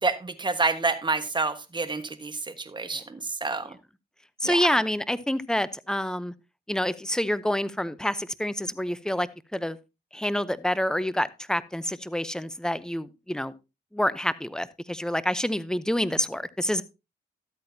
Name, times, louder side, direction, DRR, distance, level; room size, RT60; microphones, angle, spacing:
voice 1, 0.0-3.7 4.4-4.6, right 3 dB, 25° right, 10 dB, 1.3 m, -28 dB
voice 2, 4.4-6.3 6.7-9.8 10.1-13.5 13.9-16.8, left 1 dB, 5° left, 16 dB, 0.7 m, -27 dB
13.0 x 8.6 x 2.7 m, 0.27 s
cardioid pair, 75°, 18 cm